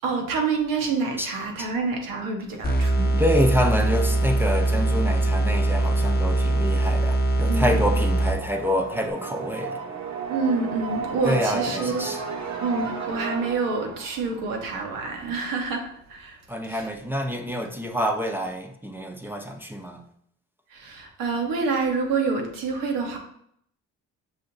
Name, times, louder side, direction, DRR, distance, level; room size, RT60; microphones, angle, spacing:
voice 1, 0.0-3.2 7.5-7.7 10.3-12.1 12.6-15.8 16.1-16.4 16.6-16.9 20.7-23.2, right 4 dB, 90° right, 2 dB, 1.0 m, -27 dB
sound 1, 2.6-8.7, right 2 dB, 30° left, 0.7 m, -22 dB
voice 2, 3.2-9.8 11.2-12.2 16.5-20.0, equal, 5° right, 3 dB, 0.5 m, -27 dB
sound 2, 7.5-15.3, right 5 dB, 55° right, 0.8 m, -34 dB
6.3 x 2.8 x 2.6 m, 0.68 s
cardioid pair, 95°, 33 cm